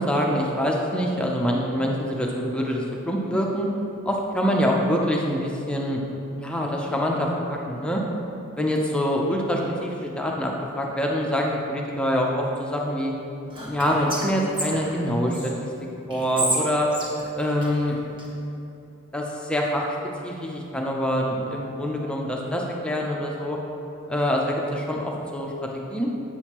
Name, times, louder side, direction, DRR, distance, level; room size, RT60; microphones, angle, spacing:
voice 1, 0.0-3.7 4.1-6.0 6.4-8.0 8.6-13.1 13.6-15.7 16.1-16.9 17.3-18.0 19.1-20.0 20.2-23.6 24.1-26.1, equal, 5° left, -1 dB, 0.5 m, -25 dB
Whispering, 13.5-15.5 16.1-18.3, equal, 25° right, 1.3 m, -31 dB
8.0 x 6.3 x 2.9 m, 2.8 s
head